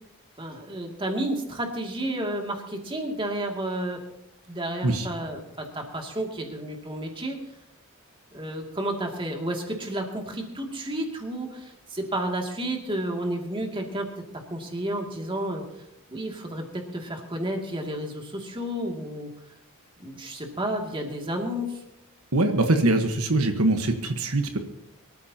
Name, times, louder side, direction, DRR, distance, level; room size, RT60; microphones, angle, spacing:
voice 1, 0.4-4.0 4.5-7.4 8.3-15.6 16.1-19.3 20.0-21.8, right 1 dB, 25° right, 1 dB, 2.4 m, -31 dB
voice 2, 22.3-24.6, right 2 dB, 80° right, 5 dB, 1.4 m, -23 dB
24.0 x 14.0 x 2.9 m, 0.82 s
head